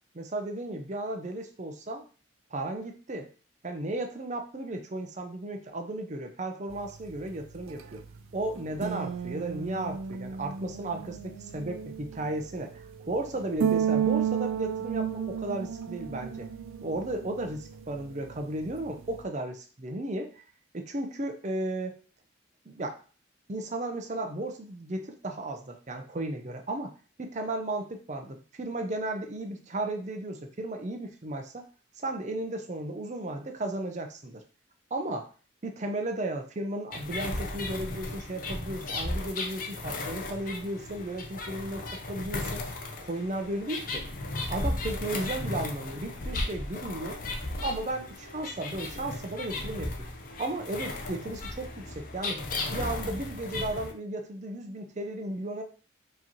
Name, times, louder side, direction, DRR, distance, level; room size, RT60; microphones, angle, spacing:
voice 1, 0.1-2.0 2.5-3.3 3.6-8.0 8.3-16.5 16.8-20.4 20.7-21.9 22.7-23.0 23.5-26.9 27.2-31.7 32.0-34.4 34.9-35.3 35.6-42.6 43.0-44.1 44.5-47.2 47.6-49.9 50.4-52.5 52.7-55.6, right 1 dB, 35° right, 4 dB, 0.5 m, -34 dB
sound 1, 6.7-19.2, right 8 dB, 90° right, 0.4 m, -34 dB
sound 2, 36.9-53.9, left 2 dB, 45° left, 0.6 m, -35 dB
4.8 x 2.9 x 2.8 m, 0.38 s
head